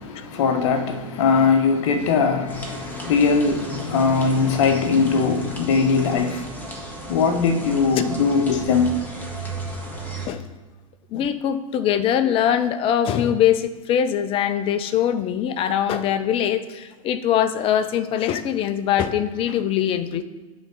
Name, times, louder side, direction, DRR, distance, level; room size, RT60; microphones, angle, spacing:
voice 1, 0.0-6.6 7.1-9.0, left 5 dB, 55° left, 0.9 m, -20 dB
sound 1, 2.5-10.3, right 1 dB, 10° left, 1.5 m, -35 dB
voice 2, 11.1-20.2, left 9 dB, 30° left, 0.5 m, -22 dB
8.7 x 3.8 x 4.3 m
figure-of-eight pair, 95°, 18 cm